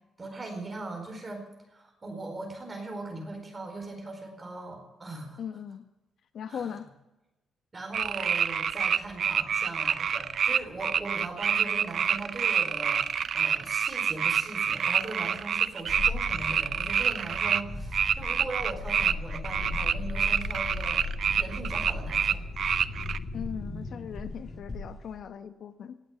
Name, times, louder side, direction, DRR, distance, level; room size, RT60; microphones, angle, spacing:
voice 1, 0.2-5.4 6.5-6.7 7.7-13.1 13.3-21.0 21.3-22.4, right 2 dB, 20° right, 3 dB, 4.5 m, -39 dB
voice 2, 5.4-5.8 6.3-6.9 23.3-26.0, left 8 dB, 60° left, 10 dB, 1.0 m, -38 dB
sound 1, 7.9-17.6 17.9-23.2, right 7 dB, 50° right, 0.6 m, -27 dB
sound 2, 15.9-25.3, left 3 dB, 25° left, 3.1 m, -37 dB
18.5 x 8.0 x 9.8 m, 1.0 s
cardioid pair, 125°, 0 cm